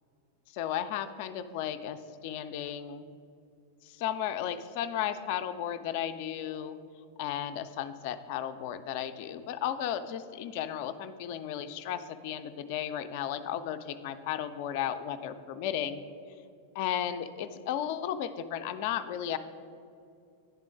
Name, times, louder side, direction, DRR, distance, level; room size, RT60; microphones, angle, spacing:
voice 1, 0.5-3.0 3.8-6.8 7.2-16.0 16.8-19.4, left 10 dB, 50° left, 11 dB, 0.4 m, -34 dB
10.5 x 3.7 x 4.9 m, 2.5 s
figure-of-eight pair, 90°, 0 cm